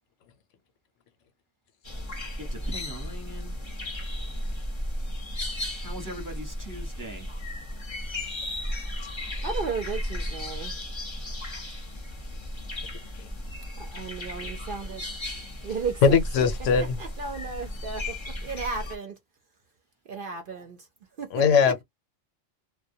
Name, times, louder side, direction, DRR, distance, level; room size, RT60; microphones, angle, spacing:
sound 1, 1.8-19.0, left 1 dB, 30° left, 0.6 m, -35 dB
voice 1, 2.4-3.6 5.8-7.3, equal, 20° right, 0.8 m, -40 dB
voice 2, 9.4-10.7 13.8-15.1 15.6-16.2 16.8-19.1 20.1-20.8 21.2-21.3, right 5 dB, 55° right, 0.7 m, -34 dB
voice 3, 16.0-17.0 21.3-21.8, left 6 dB, 90° left, 1.0 m, -20 dB
2.2 x 2.2 x 2.6 m
omnidirectional pair, 1.3 m